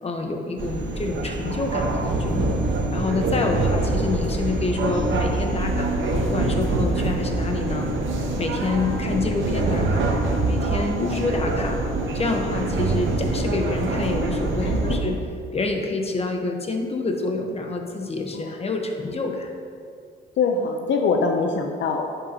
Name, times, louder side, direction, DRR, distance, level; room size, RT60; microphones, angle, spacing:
voice 1, 0.0-10.1 10.5-11.8 12.1-15.2 15.5-19.5, left 3 dB, 30° left, 3 dB, 1.1 m, -28 dB
sound 1, 0.6-15.0, right 2 dB, 70° right, 1.1 m, -24 dB
voice 2, 11.0-11.3 14.6-15.0 18.3-18.5 20.4-22.1, left 4 dB, 65° left, 3 dB, 0.7 m, -24 dB
11.0 x 6.9 x 2.9 m, 2.2 s
cardioid pair, 90°, 20 cm